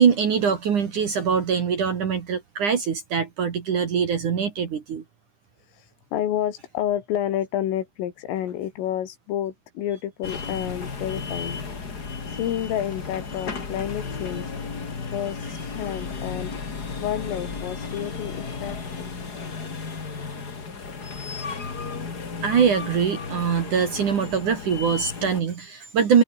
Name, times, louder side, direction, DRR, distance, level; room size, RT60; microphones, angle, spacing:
voice 1, 0.0-5.0 22.4-26.2, right 7 dB, 50° right, 2.9 m, -23 dB
voice 2, 6.1-11.6 12.3-14.5 15.1-16.7 17.0-19.1, left 11 dB, 80° left, 4.9 m, -29 dB
sound 1, 10.2-25.4, left 4 dB, 35° left, 1.7 m, -34 dB
omnidirectional pair, 5.9 m